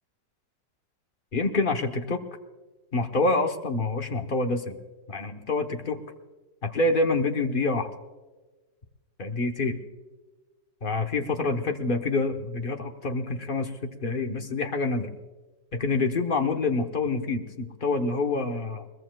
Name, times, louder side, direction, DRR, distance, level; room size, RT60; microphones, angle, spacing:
voice 1, 1.3-2.2 2.9-4.8 5.1-6.0 6.6-7.9 9.2-9.8 10.8-15.1 15.7-18.9, left 3 dB, 35° left, 4 dB, 0.9 m, -27 dB
22.0 x 21.5 x 2.3 m, 1.3 s
omnidirectional pair, 2.0 m